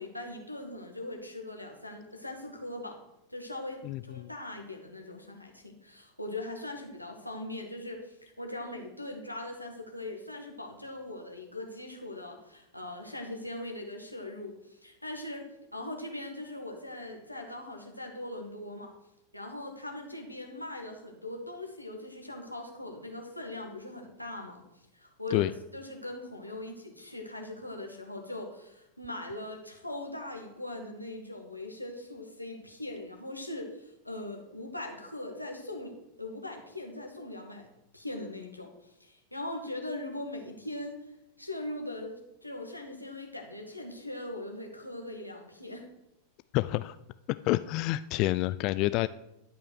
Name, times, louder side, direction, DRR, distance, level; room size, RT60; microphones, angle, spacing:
voice 1, 0.0-3.0 3.3-15.5 15.7-18.9 19.3-37.7 37.9-41.1 41.4-45.9, left 1 dB, 90° left, 2 dB, 1.9 m, -40 dB
voice 2, 3.8-4.3 25.3-25.5 46.5-47.0 47.4-49.1, left 18 dB, 40° left, 15 dB, 0.3 m, -28 dB
12.0 x 5.6 x 6.4 m, 0.85 s
figure-of-eight pair, 90°, 0 cm